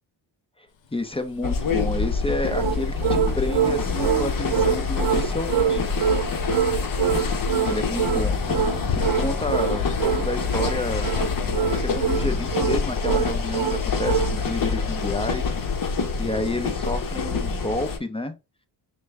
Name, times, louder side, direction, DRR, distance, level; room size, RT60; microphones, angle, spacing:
voice 1, 0.6-5.9 7.6-8.4 8.9-11.1 11.8-15.5 16.2-18.3, left 1 dB, 10° left, 0.7 m, -30 dB
Bus, 0.8-16.0, left 6 dB, 70° left, 0.8 m, -39 dB
sound 1, 1.4-18.0, left 4 dB, 45° left, 1.0 m, -26 dB
sound 2, 2.5-14.4, right 8 dB, 70° right, 0.8 m, -25 dB
5.1 x 2.2 x 3.5 m
cardioid pair, 85°, 46 cm